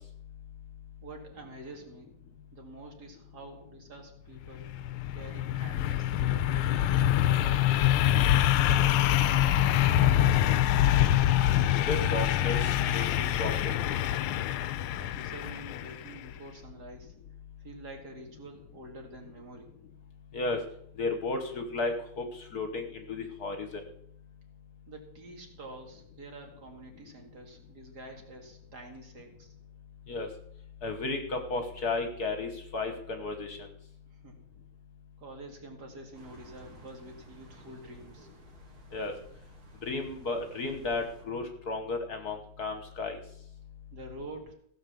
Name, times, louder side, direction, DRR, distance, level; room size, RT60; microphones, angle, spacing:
voice 1, 1.0-2.1 2.5-4.7 5.1-8.6 9.0-10.7 14.9-17.1 17.6-19.7 24.9-29.5 34.1-34.5 35.2-38.3 43.9-44.5, right 2 dB, 50° right, 3 dB, 2.6 m, -47 dB
sound 1, 4.5-16.2, left 12 dB, 80° left, 1.5 m, -25 dB
voice 2, 11.9-14.0 20.3-20.6 21.0-23.8 30.1-30.3 30.8-33.7 38.9-39.1 39.8-43.2, left 3 dB, 50° left, 6 dB, 1.5 m, -34 dB
sound 2, 36.1-41.2, right 2 dB, 80° right, 3.5 m, -54 dB
15.5 x 6.5 x 7.0 m, 0.68 s
omnidirectional pair, 2.3 m